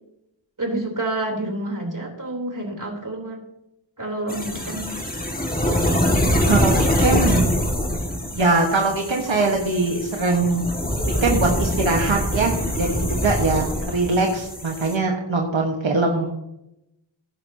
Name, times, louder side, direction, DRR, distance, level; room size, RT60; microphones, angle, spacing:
voice 1, 0.6-3.4 4.0-4.9 6.3-6.8 7.2-7.4 9.3-9.4 10.3-10.6 13.7-14.1, right 2 dB, 45° right, 1 dB, 3.6 m, -30 dB
sound 1, 4.3-14.9, equal, 20° left, 2.0 m, -24 dB
voice 2, 6.5-7.4 8.3-10.6 11.2-16.3, right 3 dB, 80° right, 1 dB, 1.5 m, -22 dB
16.0 x 11.0 x 2.8 m, 0.84 s
wide cardioid pair, 60°, 46 cm